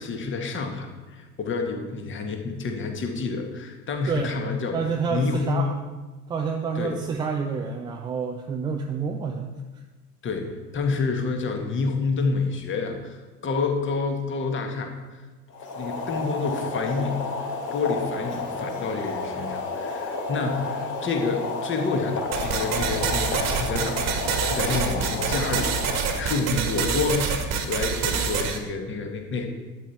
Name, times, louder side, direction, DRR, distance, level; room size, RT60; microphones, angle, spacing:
voice 1, 0.0-4.8 5.1-5.7 6.8-7.0 10.2-14.9 15.7-17.2 17.7-27.4 27.7-29.5, left 4 dB, 25° left, 4 dB, 1.8 m, -28 dB
voice 2, 4.7-5.7 6.3-9.5 26.5-26.7, right 5 dB, 10° right, 2 dB, 0.4 m, -28 dB
Boiling, 15.5-26.5, left 3 dB, 40° left, 3.5 m, -31 dB
sound 1, 22.3-28.6, right 6 dB, 35° right, 1.5 m, -26 dB
12.0 x 9.1 x 4.4 m, 1.2 s
figure-of-eight pair, 80°, 49 cm